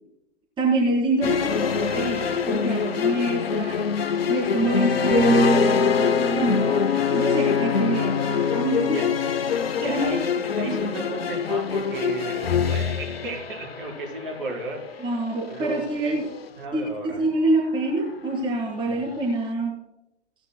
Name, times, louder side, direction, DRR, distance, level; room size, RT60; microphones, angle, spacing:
voice 1, 0.6-3.8 4.3-6.8 7.1-9.0 9.8-10.0 10.7-10.8 15.0-16.3 16.7-19.8, right 2 dB, 15° right, -3 dB, 3.3 m, -26 dB
sound 1, 1.2-16.5, left 7 dB, 60° left, 0.7 m, -25 dB
sound 2, 5.1-9.0 9.5-9.8, right 1 dB, 15° left, 1.4 m, -26 dB
voice 2, 8.8-9.1 9.8-15.1 15.5-16.2 16.6-17.3 18.9-19.1, right 2 dB, 50° right, 0 dB, 4.4 m, -34 dB
18.5 x 10.5 x 2.2 m, 0.87 s
figure-of-eight pair, 115°, 33 cm